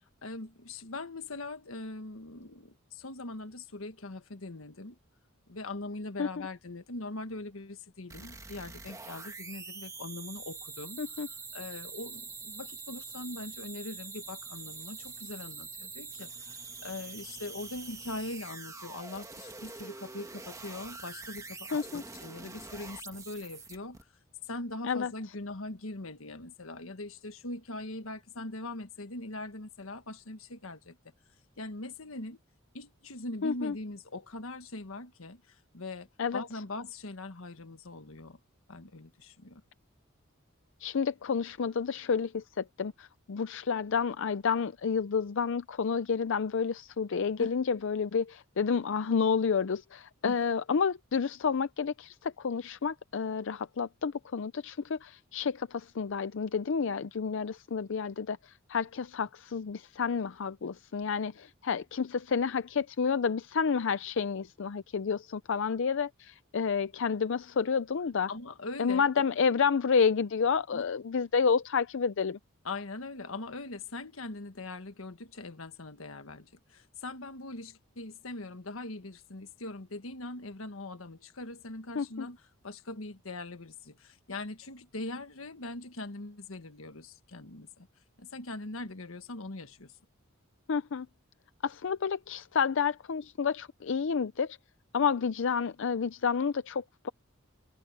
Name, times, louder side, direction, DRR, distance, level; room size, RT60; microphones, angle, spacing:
voice 1, 0.2-5.0 5.5-11.0 11.5-24.0 24.5-31.0 31.6-32.4 32.7-36.1 36.3-38.4 38.7-39.6 47.4-47.5 50.2-50.4 68.3-69.1 70.7-70.9 72.6-82.4 82.6-87.9 88.2-90.0, left 2 dB, 85° left, 1.5 m, -41 dB
sound 1, 8.1-24.0, right 4 dB, 15° right, 1.9 m, -45 dB
voice 2, 21.7-22.0 24.8-25.1 33.4-33.8 36.2-36.4 40.8-68.3 68.8-72.4 82.0-82.3 90.7-91.1 91.6-94.6 94.9-97.1, left 6 dB, 65° left, 0.5 m, -30 dB
head